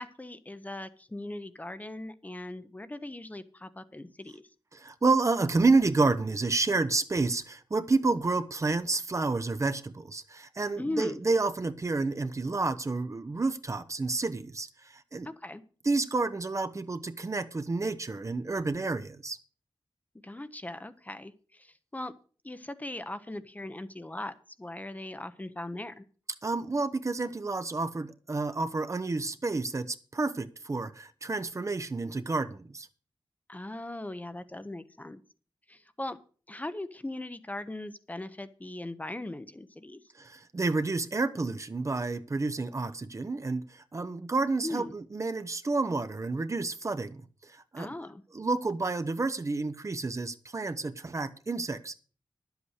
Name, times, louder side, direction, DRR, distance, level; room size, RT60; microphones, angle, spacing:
voice 1, 0.0-4.4 10.8-11.2 15.2-15.6 20.2-22.1 22.4-26.0 33.5-35.2 35.7-36.2 36.5-40.0 44.6-44.9 47.8-48.2, left 1 dB, 20° left, 0.8 m, -39 dB
voice 2, 4.7-15.3 15.8-19.4 26.4-32.9 40.2-47.9 48.3-51.9, right 3 dB, 35° right, 0.8 m, -30 dB
11.5 x 8.1 x 6.4 m
wide cardioid pair, 120°, 9 cm